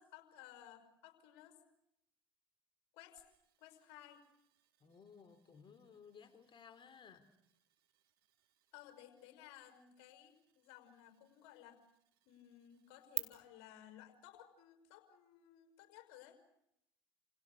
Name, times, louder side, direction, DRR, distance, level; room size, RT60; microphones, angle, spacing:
voice 1, 0.0-1.6 2.9-3.2 3.6-4.2 8.7-11.8 12.3-16.4, left 12 dB, 65° left, 8 dB, 5.6 m, -58 dB
sound 1, 3.2-13.2, right 20 dB, 70° right, 2.0 m, -53 dB
voice 2, 4.8-7.3, left 6 dB, 40° left, 10 dB, 4.0 m, -59 dB
29.5 x 28.0 x 6.8 m, 0.80 s
figure-of-eight pair, 60°, 13 cm